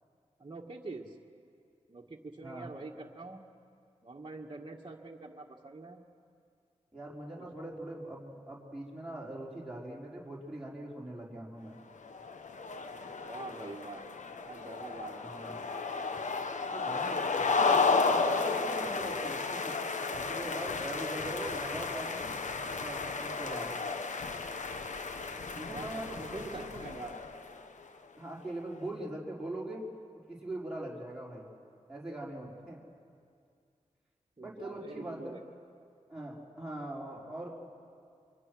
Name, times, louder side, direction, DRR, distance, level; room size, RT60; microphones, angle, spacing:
voice 1, 0.4-1.2 1.9-3.4 4.0-6.0 7.4-7.7 13.2-14.0 14.4-15.7 25.3-27.3 34.4-35.4, right 3 dB, 40° right, -1 dB, 1.8 m, -45 dB
voice 2, 6.9-11.8 15.2-15.6 16.7-19.7 20.1-22.3 22.7-23.7 25.5-26.9 28.2-29.8 30.3-31.5 31.9-32.8 34.4-35.4 36.1-37.5, right 1 dB, 5° right, -6 dB, 4.5 m, -42 dB
sound 1, 12.0-27.7, left 4 dB, 75° left, 1.1 m, -33 dB
25.0 x 24.5 x 6.3 m, 2.3 s
cardioid pair, 55°, 13 cm